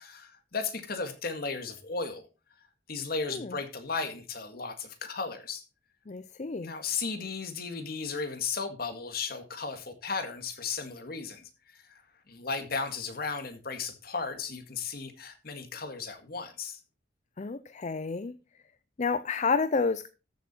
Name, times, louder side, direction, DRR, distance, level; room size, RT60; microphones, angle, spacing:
voice 1, 0.0-2.3 2.9-5.6 6.6-12.0 12.3-16.8, left 4 dB, 55° left, 2.0 m, -35 dB
voice 2, 6.1-6.7 17.4-18.3 19.0-20.1, left 4 dB, 40° left, 0.5 m, -30 dB
14.0 x 7.0 x 4.4 m
head